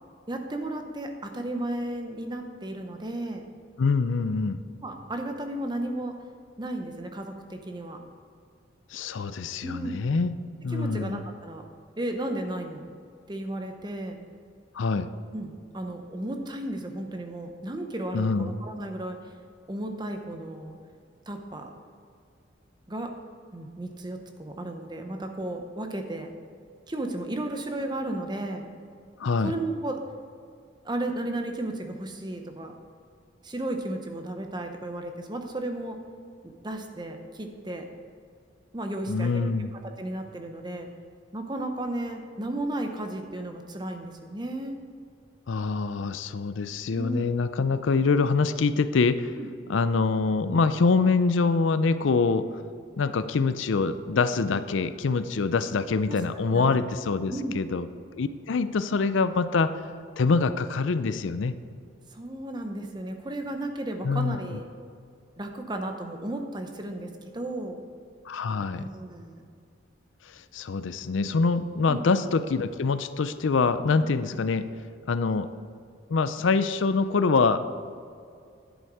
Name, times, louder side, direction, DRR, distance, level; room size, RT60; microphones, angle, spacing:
voice 1, 0.3-3.4 4.8-6.2 6.6-8.0 9.6-10.0 10.7-11.6 12.0-12.8 13.3-14.2 15.3-19.2 19.7-20.8 21.3-21.7 22.9-23.1 23.5-26.3 26.9-28.7 29.4-30.0 30.8-32.7 33.4-36.0 36.6-37.9 38.7-40.9 41.3-44.8 47.0-47.2 49.4-49.5 56.1-56.2 56.5-56.7 57.3-57.5 62.1-64.7 65.4-67.8 68.7-69.4 71.9-72.0, right 1 dB, 20° right, 5 dB, 0.8 m, -34 dB
voice 2, 3.8-4.6 8.9-10.3 10.6-11.2 14.7-15.1 18.1-18.5 29.2-29.5 39.1-39.7 45.5-49.3 49.7-52.5 53.0-57.9 58.1-59.7 60.2-61.5 64.0-64.4 68.3-68.9 70.3-74.7 75.1-75.5 76.1-77.7, left 4 dB, 75° left, 12 dB, 0.5 m, -25 dB
10.5 x 7.8 x 4.8 m, 2.3 s
head